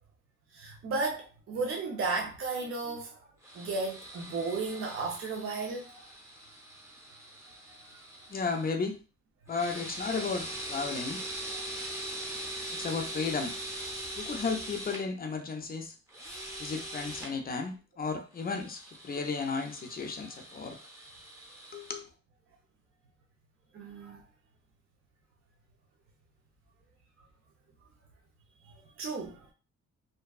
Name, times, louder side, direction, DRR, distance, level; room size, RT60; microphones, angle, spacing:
voice 1, 0.5-3.2 3.5-6.1 11.5-11.6 16.3-16.4 23.7-24.2 29.0-29.5, right 3 dB, 45° right, 0.6 m, -34 dB
sound 1, 3.4-8.7 9.5-15.0 16.1-17.3 18.3-22.0, right 1 dB, 10° right, 0.8 m, -42 dB
voice 2, 8.3-9.0 9.5-11.2 12.7-13.5 14.2-15.9 16.6-20.8 21.7-22.0, left 4 dB, 30° left, 0.5 m, -34 dB
2.6 x 2.2 x 2.3 m
cardioid pair, 90°, 30 cm